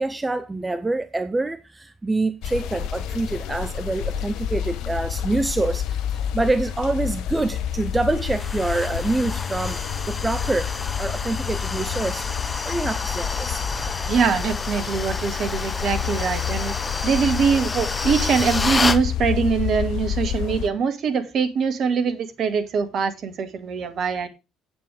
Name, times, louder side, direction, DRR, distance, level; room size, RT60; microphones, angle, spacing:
voice 1, 0.0-10.7 11.0-12.3 12.6-13.6 16.8-16.9, right 2 dB, 15° right, 0.8 m, -26 dB
sound 1, 2.4-20.7, left 9 dB, 60° left, 0.7 m, -29 dB
sound 2, 8.2-19.0, left 3 dB, 25° left, 0.9 m, -29 dB
voice 2, 14.1-16.7 17.0-24.3, right 6 dB, 50° right, 1.9 m, -23 dB
8.8 x 8.0 x 5.0 m
figure-of-eight pair, 55°, 0 cm